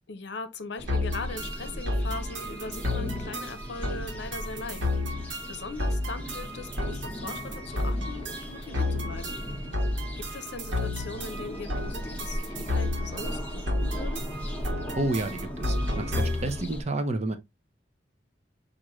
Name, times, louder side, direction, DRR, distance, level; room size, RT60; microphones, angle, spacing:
voice 1, 0.1-4.9 5.5-9.4 10.2-14.3, left 3 dB, 65° left, 0.7 m, -40 dB
sound 1, 0.8-16.8, equal, 10° left, 1.0 m, -37 dB
sound 2, 0.9-16.6, left 2 dB, 75° right, 1.3 m, -32 dB
voice 2, 14.9-17.4, right 2 dB, 35° right, 0.7 m, -30 dB
6.0 x 2.6 x 3.0 m
head